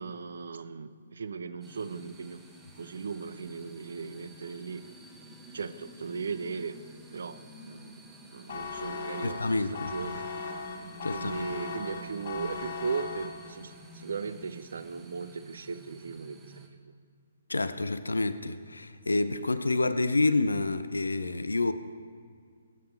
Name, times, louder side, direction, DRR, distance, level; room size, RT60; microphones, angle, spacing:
voice 1, 0.0-2.4 2.8-4.8 5.5-6.8 7.1-8.0 8.3-10.3 11.1-16.8, right 5 dB, 60° right, 13 dB, 0.6 m, -37 dB
sound 1, 1.6-16.7, right 2 dB, 10° right, 1.1 m, -50 dB
sound 2, 8.5-13.7, left 5 dB, 50° left, 1.0 m, -38 dB
voice 2, 9.2-9.9 11.0-11.3 17.5-21.7, left 2 dB, 75° left, 13 dB, 0.6 m, -28 dB
18.5 x 8.7 x 3.4 m, 2.1 s
figure-of-eight pair, 130°, 0 cm